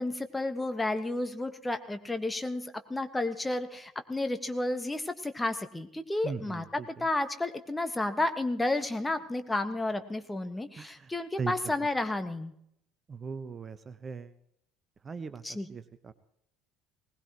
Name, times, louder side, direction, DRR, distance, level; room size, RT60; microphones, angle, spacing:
voice 1, 0.0-12.5 15.4-15.7, left 2 dB, 10° left, 8 dB, 1.5 m, -32 dB
voice 2, 6.2-7.1 10.8-11.1 11.4-11.7 13.1-14.4 15.0-15.4 15.7-16.1, right 5 dB, 30° right, 12 dB, 0.9 m, -39 dB
20.5 x 19.0 x 3.0 m, 0.72 s
figure-of-eight pair, 60°, 0 cm